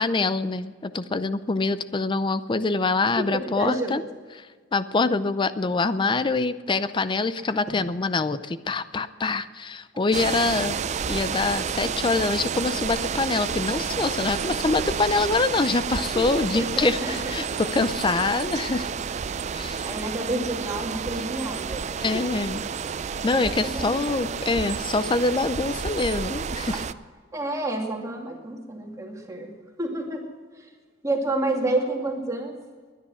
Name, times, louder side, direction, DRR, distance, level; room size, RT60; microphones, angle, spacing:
voice 1, 0.0-4.0 4.4-4.5 4.7-10.8 11.1-18.9 19.5-19.8 22.0-22.6 23.2-26.8, left 3 dB, 25° left, 14 dB, 0.5 m, -25 dB
voice 2, 3.2-4.0 16.1-17.2 19.8-21.9 22.1-22.2 23.3-24.4 27.3-29.5 29.8-30.2 30.6-30.7 31.0-32.6, right 2 dB, 20° right, 0 dB, 2.4 m, -29 dB
sound 1, 10.1-26.9, right 6 dB, 40° right, 0.4 m, -30 dB
21.0 x 10.0 x 6.1 m, 1.6 s
head